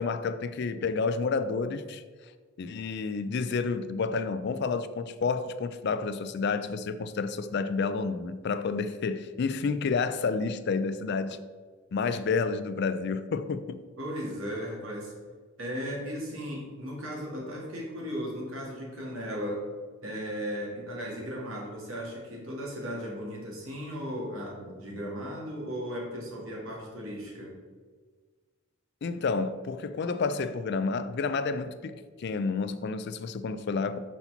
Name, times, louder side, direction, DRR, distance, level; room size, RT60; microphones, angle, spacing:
voice 1, 0.0-2.0 2.6-11.4 11.9-13.8 29.0-34.0, left 4 dB, 55° left, 0.4 m, -30 dB
voice 2, 14.0-15.1 15.6-19.6 20.0-27.5, equal, 80° right, 2.1 m, -36 dB
5.9 x 4.2 x 5.7 m
head